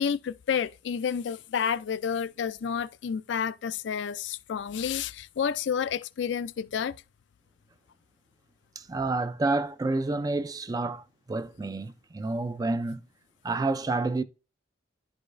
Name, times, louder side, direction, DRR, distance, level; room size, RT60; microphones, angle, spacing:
voice 1, 0.0-7.0, left 7 dB, 65° left, 0.4 m, -30 dB
voice 2, 8.8-13.0 13.4-14.2, right 3 dB, 20° right, 0.3 m, -29 dB
11.0 x 4.9 x 2.5 m
head